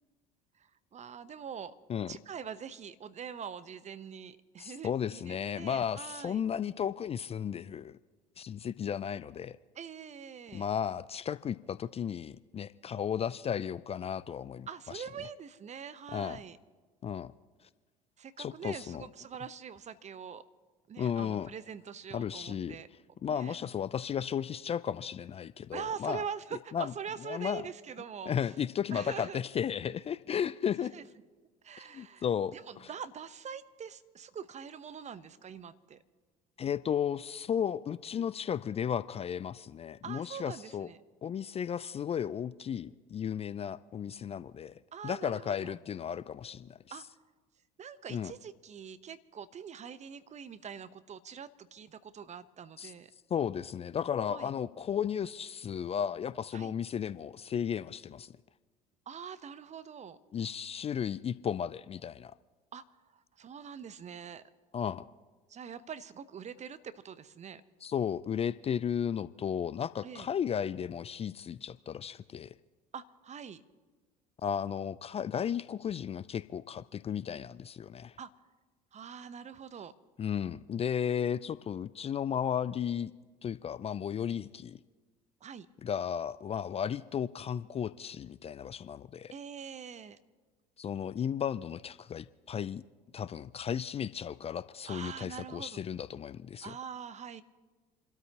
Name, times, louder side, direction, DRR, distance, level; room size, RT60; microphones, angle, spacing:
voice 1, 0.6-1.7 2.0-6.4 9.7-10.6 14.7-16.6 18.2-20.4 20.9-22.9 23.3-23.6 25.7-28.3 28.9-29.4 30.8-31.0 31.6-32.2 32.5-36.0 40.0-41.0 44.9-45.7 46.9-47.0 47.8-53.1 54.3-54.5 56.5-56.7 59.1-60.2 62.7-62.8 63.1-64.4 65.5-67.6 70.0-70.3 72.9-73.6 78.2-78.3 78.9-79.9 85.4-85.7 89.3-90.2 94.9-95.8 96.6-97.4, right 7 dB, 35° right, 13 dB, 0.9 m, -44 dB
voice 2, 4.6-8.0 8.4-9.6 10.5-14.7 14.9-15.0 16.1-16.4 17.0-17.3 18.4-19.0 21.0-21.5 22.1-22.8 23.2-26.2 26.7-26.9 27.3-27.6 28.3-30.9 31.9-32.9 36.6-40.9 41.2-44.7 45.0-46.8 48.1-48.3 52.8-52.9 53.3-58.3 60.3-62.3 64.7-65.1 67.8-72.5 74.4-78.2 80.2-83.1 83.4-84.8 85.8-89.3 90.8-92.8 93.1-96.7, left 8 dB, 30° left, 17 dB, 0.5 m, -34 dB
29.0 x 13.0 x 2.9 m, 1.3 s
hypercardioid pair, 65°, 20 cm